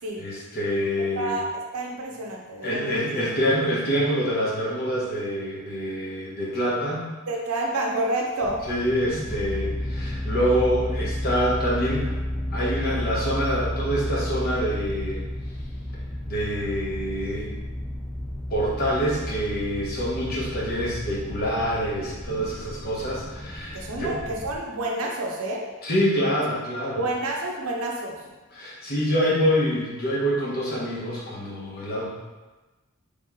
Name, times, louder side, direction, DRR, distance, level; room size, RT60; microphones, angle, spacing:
voice 1, 0.2-1.4 2.6-7.0 8.7-12.2 12.5-15.2 16.3-17.5 18.5-24.2 25.8-27.0 28.5-32.1, equal, 45° left, -6 dB, 1.1 m, -26 dB
voice 2, 1.1-3.0 7.3-8.6 23.7-25.7 26.9-28.3, right 2 dB, 75° right, -1 dB, 0.6 m, -29 dB
sound 1, 8.4-24.6, left 1 dB, 5° left, 0.5 m, -32 dB
3.6 x 3.0 x 3.6 m, 1.2 s
head